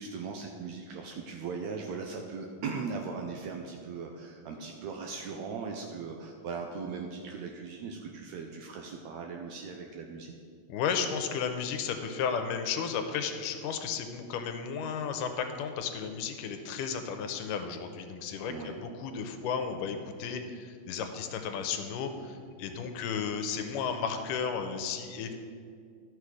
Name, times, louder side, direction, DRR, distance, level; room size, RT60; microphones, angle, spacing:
voice 1, 0.0-10.3 18.5-18.8, right 5 dB, 80° right, 2 dB, 1.6 m, -39 dB
voice 2, 10.7-25.3, left 6 dB, 85° left, 7 dB, 2.2 m, -34 dB
12.5 x 6.4 x 4.8 m, 2.2 s
omnidirectional pair, 3.8 m